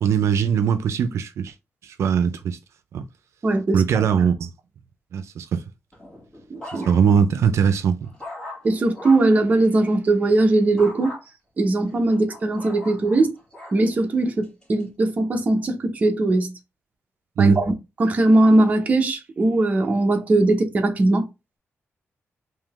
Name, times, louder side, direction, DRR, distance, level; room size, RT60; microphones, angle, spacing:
voice 1, 0.0-1.5 1.8-2.6 2.9-3.0 3.7-4.5 5.1-5.6 6.7-8.1 17.4-17.6, right 7 dB, 80° right, 0.5 m, -20 dB
voice 2, 3.4-4.1 6.5-6.9 8.6-11.1 11.6-13.3 13.7-16.5 17.4-17.7 18.0-21.3, right 2 dB, 30° right, 0.7 m, -20 dB
sound 1, 5.9-7.3 7.7-9.4 10.8-11.2 11.9-13.8 14.4-14.8, left 1 dB, 15° left, 1.7 m, -39 dB
3.7 x 2.7 x 3.4 m
wide cardioid pair, 175°, 5 cm